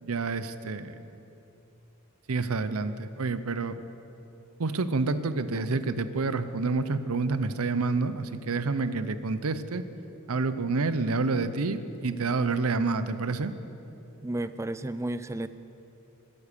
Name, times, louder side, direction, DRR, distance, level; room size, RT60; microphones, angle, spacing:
voice 1, 0.0-1.0 2.3-3.8 4.6-9.9 10.3-13.5, right 3 dB, 70° right, 12 dB, 0.7 m, -28 dB
voice 2, 14.2-15.5, right 1 dB, 15° right, 13 dB, 0.3 m, -33 dB
15.5 x 9.8 x 6.7 m, 2.9 s
head